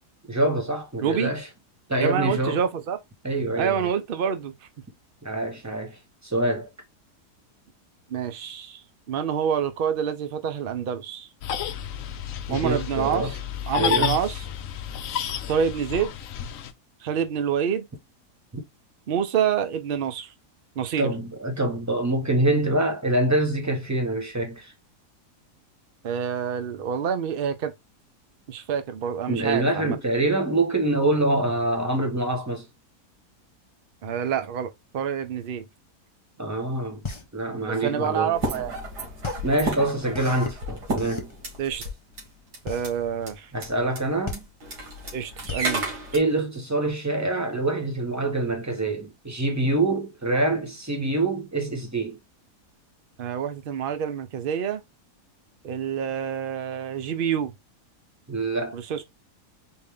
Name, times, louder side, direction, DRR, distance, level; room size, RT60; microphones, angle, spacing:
voice 1, 0.3-1.4 1.9-2.6 3.2-3.9 5.2-6.7 12.5-13.3 13.8-14.1 21.0-24.7 29.3-32.7 36.4-38.4 39.4-41.3 43.5-44.5 46.1-52.2 58.3-58.8, right 2 dB, 15° right, 0.8 m, -25 dB
voice 2, 2.0-3.0 3.6-4.5 8.1-11.3 12.5-13.4 13.7-14.4 15.5-16.1 17.0-17.9 19.1-20.3 20.8-21.1 26.0-27.7 28.5-30.0 34.0-35.7 37.7-38.7 41.6-41.8 42.6-43.5 45.1-45.9 53.2-54.8 55.6-57.5 58.7-59.0, right 8 dB, 65° right, 0.5 m, -27 dB
sound 1, 11.4-16.7, left 9 dB, 65° left, 0.9 m, -30 dB
sound 2, 37.0-46.9, left 4 dB, 40° left, 0.4 m, -37 dB
sound 3, 38.3-41.9 42.2-42.3 42.5-42.9 43.3-43.4 43.5-43.7 44.0-44.1 44.3-46.2, right 2 dB, 85° right, 2.2 m, -32 dB
4.4 x 2.7 x 3.5 m
omnidirectional pair, 1.7 m